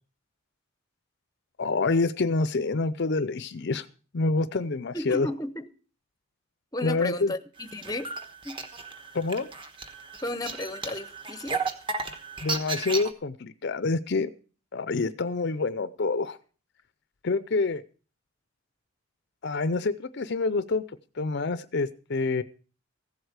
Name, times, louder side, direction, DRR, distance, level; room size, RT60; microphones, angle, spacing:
voice 1, 1.6-3.9 4.1-5.3 6.8-7.3 9.1-9.5 12.4-14.3 14.7-16.4 17.2-17.8 19.4-20.8 21.2-22.4, left 3 dB, 50° left, 0.5 m, -27 dB
voice 2, 4.9-5.7 6.7-8.1 8.4-8.6 10.2-11.6, left 1 dB, 15° left, 0.7 m, -33 dB
sound 1, 7.6-13.1, right 4 dB, 20° right, 1.1 m, -34 dB
15.5 x 8.0 x 6.5 m
head